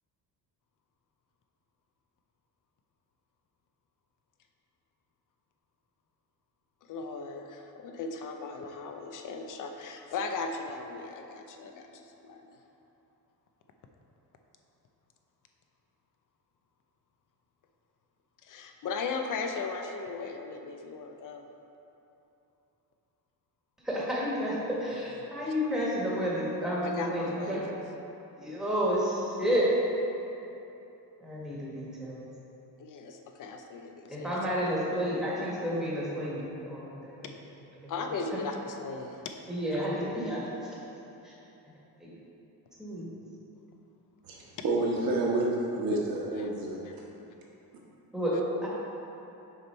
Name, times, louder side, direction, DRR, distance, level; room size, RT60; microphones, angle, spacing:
voice 1, 6.9-12.5 18.4-21.5 26.8-27.7 32.8-34.4 37.9-39.2 39.7-39.8 46.4-46.5 46.8-46.9, left 4 dB, 55° left, 5 dB, 0.6 m, -37 dB
voice 2, 23.8-27.6 28.4-29.7 31.2-32.2 34.1-37.3 38.0-38.1 39.5-40.7 41.2-41.3 42.0-42.1 42.8-43.1 48.1-48.3 48.6-48.7, equal, ahead, -7 dB, 1.4 m, -31 dB
voice 3, 44.2-46.8, right 2 dB, 60° right, -3 dB, 1.2 m, -29 dB
6.5 x 4.3 x 4.3 m, 2.9 s
cardioid pair, 130°, 39 cm